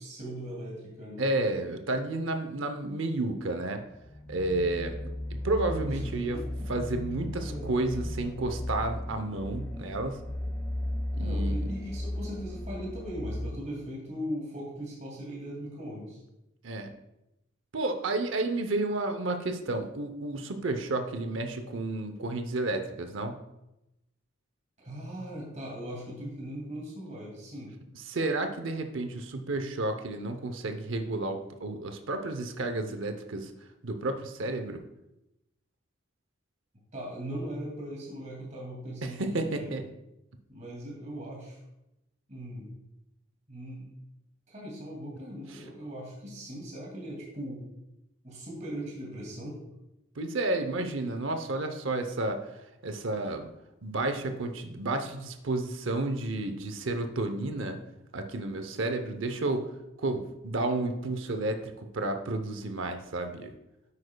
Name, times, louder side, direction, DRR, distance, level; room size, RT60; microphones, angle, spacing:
voice 1, 0.0-1.3 5.9-6.7 7.4-7.7 11.2-16.2 24.8-27.7 36.9-39.8 40.5-41.6 42.3-42.7 43.5-43.9 44.5-47.7 48.2-49.6, equal, 35° right, -4 dB, 2.3 m, -39 dB
voice 2, 1.2-3.8 4.3-6.4 6.7-10.2 11.1-11.6 16.6-16.9 17.7-23.3 27.9-33.5 33.8-34.8 39.0-39.8 50.2-52.4 52.8-53.5 53.8-57.8 58.1-59.7 60.0-63.5, right 2 dB, 70° right, 7 dB, 0.7 m, -31 dB
sound 1, 4.0-13.5, left 1 dB, 10° left, 0.3 m, -35 dB
9.9 x 8.3 x 2.3 m, 0.91 s
head